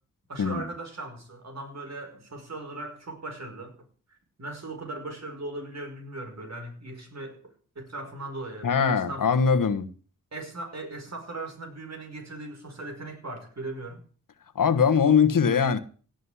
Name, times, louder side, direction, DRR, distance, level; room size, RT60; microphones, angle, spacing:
voice 1, 0.3-3.8 4.4-9.3 10.3-14.0 15.5-15.6, right 2 dB, 55° right, 5.5 m, -38 dB
voice 2, 8.6-9.9 14.5-15.8, left 6 dB, 80° left, 1.4 m, -21 dB
17.5 x 6.6 x 9.9 m
wide cardioid pair, 85°, 32 cm